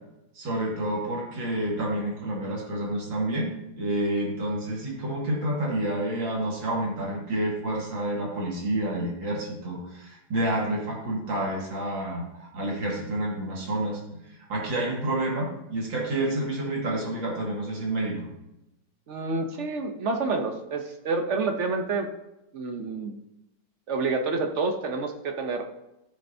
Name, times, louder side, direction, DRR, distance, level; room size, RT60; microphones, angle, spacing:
voice 1, 0.3-18.3, right 1 dB, 85° right, -2 dB, 2.8 m, -29 dB
voice 2, 19.1-22.1 22.5-23.2 23.9-25.7, right 3 dB, 55° right, 5 dB, 0.9 m, -28 dB
13.5 x 6.5 x 2.7 m, 0.89 s
omnidirectional pair, 2.0 m